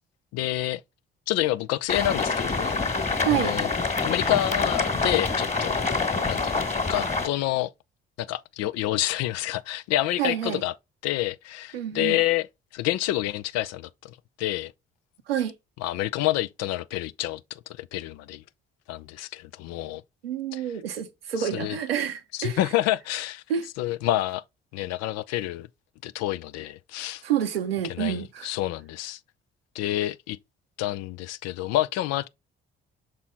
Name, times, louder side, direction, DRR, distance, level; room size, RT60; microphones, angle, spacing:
voice 1, 0.3-0.8 1.3-2.8 3.3-3.7 4.0-5.8 6.3-6.5 6.9-7.7 8.2-10.7 11.0-12.5 12.7-14.1 14.4-14.7 15.8-18.4 18.9-20.0 20.5-20.6 21.4-21.8 22.3-23.4 23.8-24.4 24.7-25.7 26.0-27.2 27.9-29.2 29.7-30.4 30.8-32.3, left 15 dB, 60° left, 0.5 m, -28 dB
sound 1, 1.9-7.3, left 3 dB, 25° left, 1.8 m, -26 dB
voice 2, 3.2-3.5 10.2-10.6 11.7-12.2 15.3-15.5 20.2-22.6 23.5-23.7 27.2-28.5, right 9 dB, 85° right, 0.8 m, -28 dB
6.2 x 4.1 x 3.7 m
figure-of-eight pair, 45°, 29 cm